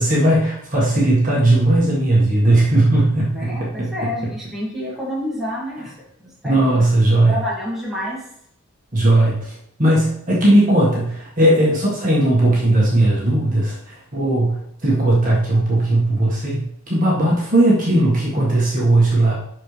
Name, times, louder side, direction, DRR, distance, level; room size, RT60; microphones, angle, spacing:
voice 1, 0.0-3.9 6.4-7.3 8.9-19.3, right 1 dB, 40° right, -5 dB, 1.7 m, -17 dB
voice 2, 3.3-5.9 6.2-6.8 7.1-8.2, left 1 dB, ahead, -7 dB, 2.3 m, -29 dB
11.5 x 4.5 x 3.3 m, 0.73 s
head